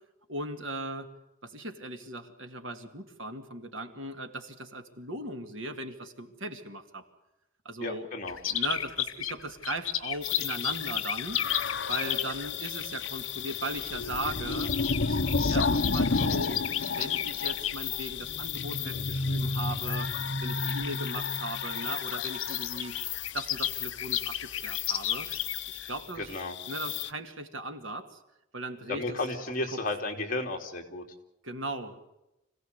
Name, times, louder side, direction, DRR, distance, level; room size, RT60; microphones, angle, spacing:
voice 1, 0.3-1.0 1.5-4.3 4.7-6.8 7.7-8.1 8.5-8.9 9.2-11.4 11.9-14.7 15.5-16.6 17.0-20.0 20.4-22.9 23.3-24.2 24.6-25.3 25.9-26.3 26.7-28.0 28.5-29.0 29.7-29.8 31.5-32.1, right 1 dB, 70° right, 6 dB, 2.3 m, -37 dB
voice 2, 7.8-8.4 12.0-12.1 26.2-26.6 28.9-31.0, left 2 dB, 40° left, 2 dB, 3.0 m, -33 dB
sound 1, 8.3-12.5 13.5-13.8 14.1-17.7 18.4-18.7 19.3-19.4 19.8-19.9 20.9-21.0 21.2-21.3 21.5-25.9 26.2-26.3, left 11 dB, 80° left, 1.4 m, -33 dB
sound 2, 10.2-27.1, left 4 dB, 60° left, 0.9 m, -32 dB
26.0 x 17.0 x 8.1 m, 0.93 s
head